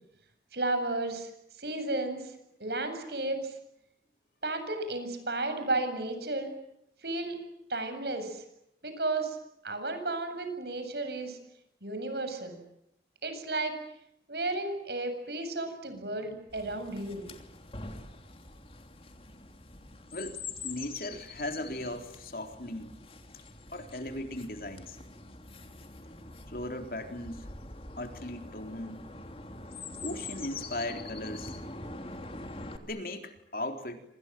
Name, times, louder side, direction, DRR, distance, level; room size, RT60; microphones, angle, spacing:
voice 1, 0.5-1.3 1.6-2.3 2.6-3.5 4.4-6.5 7.0-7.4 7.7-8.4 8.8-9.4 9.6-11.4 11.8-12.6 13.2-13.8 14.3-17.2, right 2 dB, 70° right, 8 dB, 7.9 m, -33 dB
Chirp tweet, 16.5-32.8, left 3 dB, 30° left, 3.0 m, -44 dB
voice 2, 20.1-22.9 23.7-25.0 26.5-27.5 28.0-29.1 30.0-31.5 32.8-34.0, left 1 dB, 55° left, 6 dB, 3.9 m, -38 dB
29.0 x 27.0 x 7.7 m, 0.77 s
head